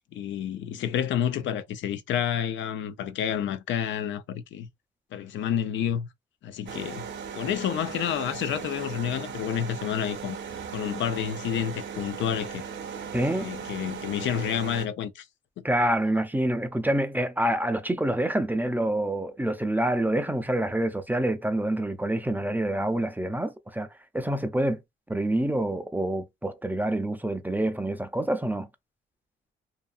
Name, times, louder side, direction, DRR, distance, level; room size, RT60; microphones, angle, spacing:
voice 1, 0.1-4.7 5.1-6.1 6.4-7.1 7.3-10.4 10.7-12.6 13.3-15.3 15.6-15.7, left 9 dB, 70° left, 0.5 m, -29 dB
sound 1, 6.7-14.9, right 7 dB, 65° right, 0.7 m, -37 dB
voice 2, 13.1-13.5 15.6-23.9 24.1-24.8 25.1-28.7, right 1 dB, 10° right, 0.4 m, -27 dB
2.7 x 2.4 x 2.4 m
cardioid pair, 90°, 20 cm